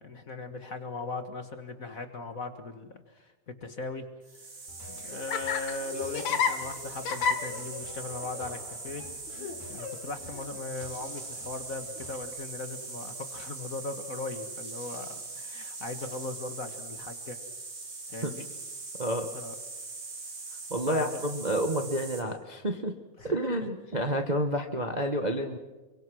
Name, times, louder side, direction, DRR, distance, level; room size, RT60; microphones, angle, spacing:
voice 1, 0.0-4.0 4.9-9.0 9.7-17.4 18.1-18.4 19.3-19.5 20.9-21.2 23.2-23.5, left 3 dB, 35° left, 7 dB, 1.4 m, -39 dB
sound 1, 4.2-22.2, right 3 dB, 45° right, 4.2 m, -41 dB
Laughter, 4.7-12.2, left 6 dB, 70° left, 2.9 m, -35 dB
voice 2, 19.0-19.3 20.7-22.9 23.2-25.6, right 1 dB, 65° right, 4 dB, 0.4 m, -29 dB
27.0 x 24.0 x 6.3 m, 1.2 s
omnidirectional pair, 3.4 m